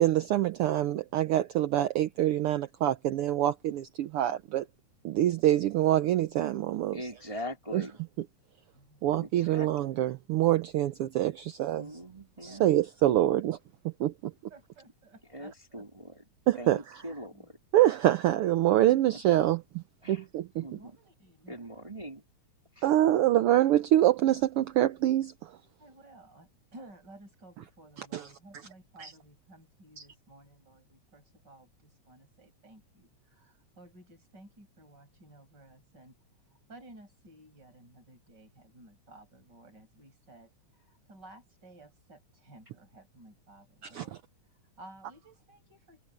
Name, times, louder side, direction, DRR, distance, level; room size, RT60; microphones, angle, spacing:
voice 1, 0.0-4.6 5.0-7.0 7.7-7.8 9.0-11.9 12.4-13.6 14.0-14.1 16.5-16.8 17.7-19.8 20.1-20.7 22.8-25.3 28.1-28.3 29.0-29.1 43.8-44.0, right 13 dB, 90° right, 1.2 m, -25 dB
voice 2, 6.9-8.0 9.1-10.0 11.8-12.7 15.3-16.2 16.6-17.6 18.9-19.0 20.0-20.2 20.6-20.9 21.5-22.2 22.7-22.9, equal, 10° right, 2.6 m, -42 dB
voice 3, 8.7-9.4 12.4-12.7 14.5-15.8 17.3-17.5 20.7-21.7 25.8-36.1 36.5-44.2 44.5-46.0, right 2 dB, 35° right, 8.8 m, -55 dB
omnidirectional pair, 3.3 m